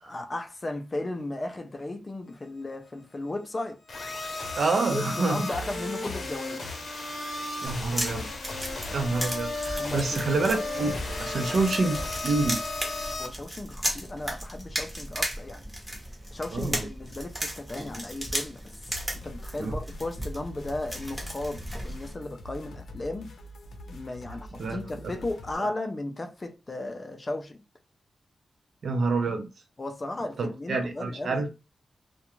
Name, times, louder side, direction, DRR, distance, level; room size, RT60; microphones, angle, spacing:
voice 1, 0.0-3.8 4.9-6.8 9.8-10.2 13.2-15.7 16.3-18.9 19.2-23.3 23.9-27.6 29.8-31.4, left 2 dB, 25° left, 0.4 m, -35 dB
sound 1, 3.9-13.3, left 2 dB, 50° left, 0.8 m, -34 dB
voice 2, 4.6-5.5 7.6-8.3 8.9-12.6 16.5-16.9 19.6-19.8 24.6-24.8 25.6-25.7 28.8-29.5 30.4-31.5, right 3 dB, 65° right, 0.6 m, -27 dB
sound 2, 7.6-22.1, equal, 10° right, 0.8 m, -36 dB
sound 3, 18.9-25.5, left 2 dB, 85° left, 0.5 m, -45 dB
2.4 x 2.2 x 3.0 m
wide cardioid pair, 140°, 0 cm